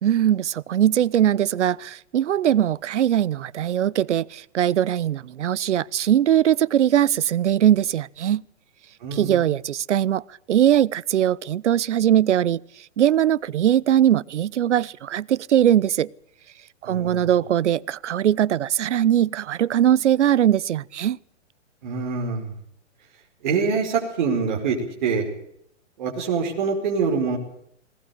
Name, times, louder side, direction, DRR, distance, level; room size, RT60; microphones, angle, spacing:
voice 1, 0.0-8.4 9.1-10.2 10.5-12.6 13.0-16.1 16.8-21.2, right 10 dB, 75° right, 0.9 m, -20 dB
voice 2, 9.0-9.4 16.8-17.2 21.8-22.6 23.4-25.3 26.0-27.4, right 5 dB, 40° right, 4.8 m, -25 dB
19.5 x 19.5 x 8.4 m
hypercardioid pair, 180°, 36 cm